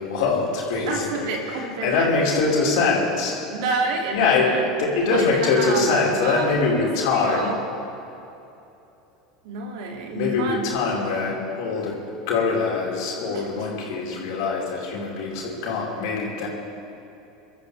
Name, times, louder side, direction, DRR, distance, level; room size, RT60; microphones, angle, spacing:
voice 1, 0.0-3.4 4.1-7.5 10.1-16.5, left 4 dB, 65° left, -4 dB, 4.8 m, -23 dB
voice 2, 0.9-2.2 3.5-4.6 5.1-6.5 6.8-7.6 9.4-10.7 13.3-13.7, right 3 dB, 65° right, 1 dB, 2.6 m, -29 dB
29.5 x 13.5 x 3.4 m, 2.9 s
hypercardioid pair, 80°, 3 cm